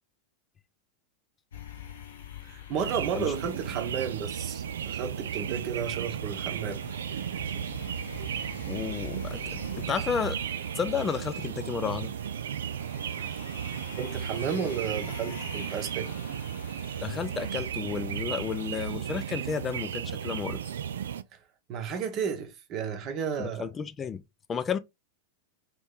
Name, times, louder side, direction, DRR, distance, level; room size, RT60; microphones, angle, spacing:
sound 1, 1.5-18.7, left 7 dB, 65° left, 0.8 m, -46 dB
voice 1, 2.4-6.8 13.1-13.2 14.0-16.1 21.3-21.4 21.7-23.6, right 7 dB, 35° right, 0.9 m, -33 dB
sound 2, 2.8-21.2, right 9 dB, 65° right, 0.3 m, -35 dB
voice 2, 8.7-10.4 10.7-12.1 17.0-20.6 23.4-24.2 24.5-24.8, left 6 dB, 20° left, 0.4 m, -32 dB
3.1 x 3.0 x 3.6 m
figure-of-eight pair, 90°, 0 cm